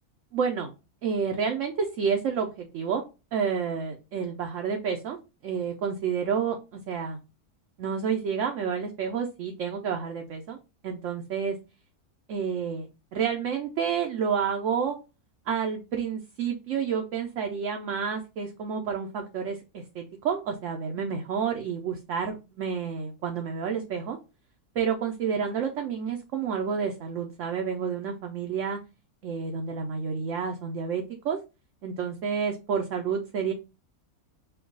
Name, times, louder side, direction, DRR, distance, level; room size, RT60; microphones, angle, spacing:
voice 1, 0.3-0.7 1.0-3.0 3.3-5.2 5.4-7.2 7.8-10.6 10.8-11.6 12.3-14.9 15.5-22.3 22.6-24.2 24.7-28.8 29.2-31.4 31.8-33.5, right 6 dB, 65° right, 3 dB, 0.9 m, -29 dB
4.5 x 2.3 x 3.8 m, 0.28 s
omnidirectional pair, 1.6 m